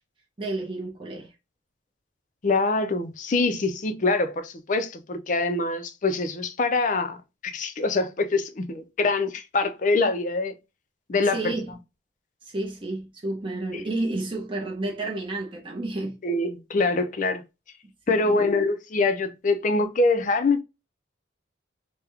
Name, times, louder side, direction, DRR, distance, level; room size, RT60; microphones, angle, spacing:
voice 1, 0.4-1.3 11.2-11.7 12.4-16.2 18.1-18.4, right 2 dB, 25° right, 0.7 m, -31 dB
voice 2, 2.4-7.2 7.4-10.5 11.1-11.5 16.2-17.4 18.1-20.6, left 3 dB, 40° left, 0.5 m, -24 dB
3.4 x 2.1 x 3.3 m
head